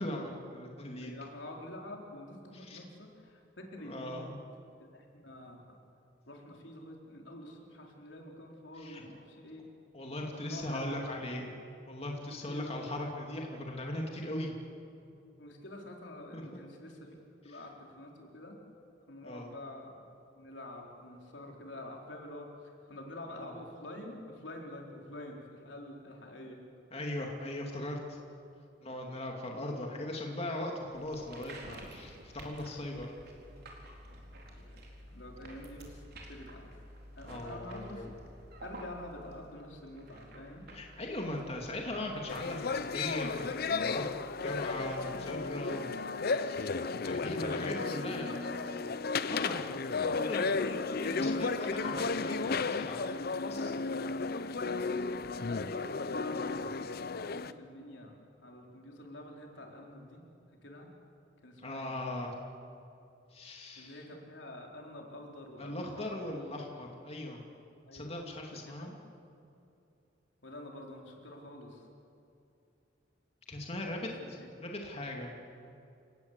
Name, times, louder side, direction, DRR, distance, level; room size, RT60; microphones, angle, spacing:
voice 1, 0.0-1.1 2.5-2.8 3.8-4.4 8.8-9.0 9.9-11.5 11.9-14.5 16.3-16.4 19.2-19.5 26.9-28.2 28.8-33.1 37.2-38.0 40.7-44.0 44.4-46.0 46.3-48.3 49.3-49.7 50.0-53.0 53.4-53.7 61.6-62.3 63.3-64.0 65.6-67.4 67.9-68.9 73.5-75.3, left 1 dB, 35° left, 0 dB, 2.6 m, -39 dB
voice 2, 1.0-4.3 4.8-5.8 6.3-9.7 10.3-11.2 12.4-12.7 15.4-17.1 17.4-18.6 19.1-20.0 20.3-26.6 34.6-36.8 37.2-38.2 38.6-40.6 48.0-48.8 49.2-49.6 54.9-56.8 57.1-60.2 60.6-60.9 61.4-61.9 63.8-66.2 67.9-68.1 68.7-68.9 70.4-71.9 74.0-74.5, left 1 dB, 80° left, 1 dB, 4.2 m, -47 dB
sound 1, 30.9-45.5, right 1 dB, 60° right, 4.3 m, -52 dB
sound 2, 42.3-57.5, left 4 dB, 55° left, 0.7 m, -34 dB
29.5 x 18.0 x 8.3 m, 2.6 s
head